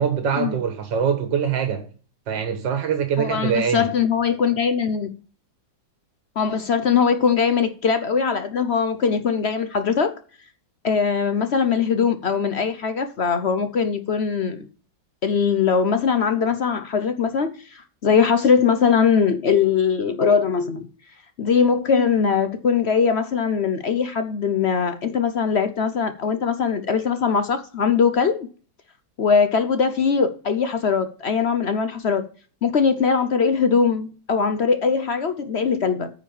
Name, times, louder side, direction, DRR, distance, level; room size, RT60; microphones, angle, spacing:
voice 1, 0.0-1.9 2.3-3.9, right 7 dB, 85° right, 2.0 m, -23 dB
voice 2, 3.2-5.1 6.4-10.1 10.8-14.7 15.2-20.9 21.4-28.5 29.2-32.3 32.6-36.1, left 6 dB, 55° left, 0.7 m, -21 dB
9.3 x 5.0 x 7.0 m
omnidirectional pair, 2.0 m